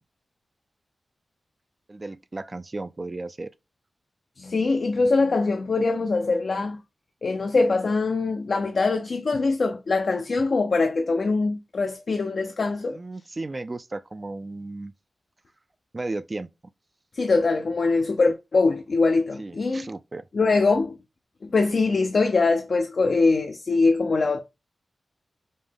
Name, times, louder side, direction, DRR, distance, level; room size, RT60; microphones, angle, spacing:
voice 1, 1.9-3.5 12.9-14.9 15.9-16.5 19.4-20.3, right 2 dB, 40° right, 0.3 m, -34 dB
voice 2, 4.4-6.8 7.2-13.0 17.1-19.9 20.3-21.0 21.4-24.4, left 3 dB, 70° left, 0.5 m, -23 dB
5.3 x 2.1 x 3.4 m
cardioid pair, 45°, 0 cm